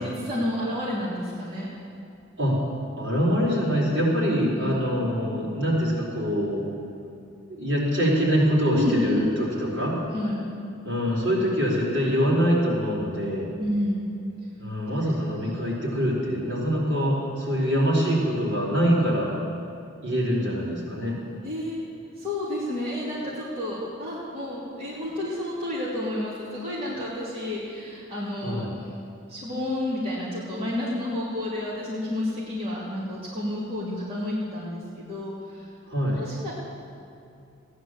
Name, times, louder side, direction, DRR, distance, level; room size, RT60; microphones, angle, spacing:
voice 1, 0.0-1.7 4.5-4.8 8.7-9.3 10.1-10.4 13.6-14.0 15.3-15.5 17.6-17.8 21.4-21.8 22.1-28.7 29.3-35.7 36.1-36.5, left 1 dB, 30° right, -8 dB, 2.7 m, -30 dB
voice 2, 3.0-6.7 7.5-10.0 10.8-13.5 14.6-19.3 20.0-21.1 28.4-28.7 35.9-36.2, equal, 60° right, -5 dB, 4.3 m, -24 dB
16.0 x 10.0 x 7.6 m, 2.5 s
head